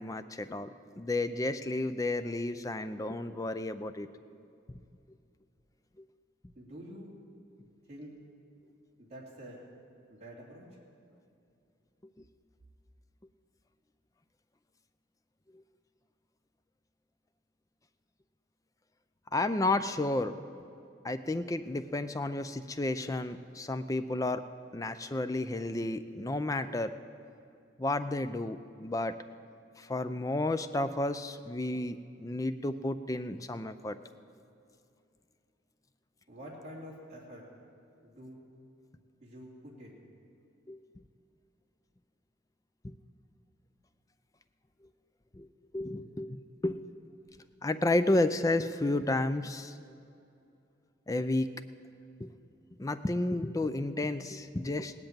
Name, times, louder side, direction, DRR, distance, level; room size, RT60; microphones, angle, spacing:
voice 1, 0.0-4.1 19.3-20.4 21.0-24.4 24.7-26.9 27.8-29.1 29.8-34.0 40.7-40.8 45.3-45.5 45.7-46.8 47.6-49.7 51.1-51.5 52.2-52.3 52.8-54.9, left 2 dB, 15° left, 10 dB, 0.4 m, -32 dB
voice 2, 6.5-7.1 7.9-8.1 9.0-9.6 10.1-10.6 36.3-37.4 38.0-38.4 39.2-40.0, equal, 35° right, -5 dB, 2.8 m, -47 dB
18.0 x 7.9 x 8.8 m, 2.5 s
head